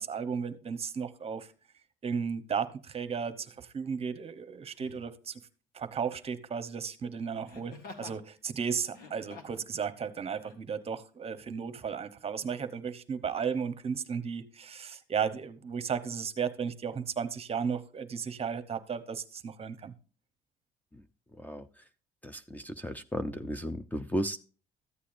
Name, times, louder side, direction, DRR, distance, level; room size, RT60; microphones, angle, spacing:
voice 1, 0.0-1.5 2.0-5.4 5.7-19.9, right 6 dB, 35° right, 0.9 m, -34 dB
Laughter, 3.2-3.4 4.7-5.1 7.5-8.2 8.9-9.7 10.4-10.6, left 3 dB, 60° left, 2.1 m, -48 dB
voice 2, 22.2-24.4, equal, 10° left, 0.6 m, -34 dB
14.0 x 8.3 x 2.6 m
cardioid pair, 110°, 17 cm